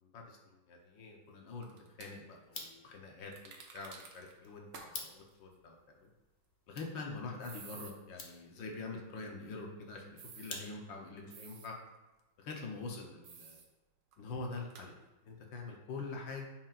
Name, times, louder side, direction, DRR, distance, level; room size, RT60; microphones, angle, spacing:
voice 1, 0.0-6.1 6.7-11.8 12.4-13.6 14.2-14.9 15.2-16.5, left 3 dB, 70° left, 1 dB, 1.6 m, -45 dB
sound 1, 1.6-2.1 3.3-4.3 4.7-4.9 5.2-5.3 7.4-7.9 10.2-10.6 11.3-11.7 13.2-13.7 14.1-14.2 14.7-14.9, right 5 dB, 65° right, 1.5 m, -52 dB
sound 2, 2.4-11.1, left 3 dB, 45° left, 0.6 m, -52 dB
9.6 x 5.9 x 2.5 m, 1.1 s
omnidirectional pair, 2.2 m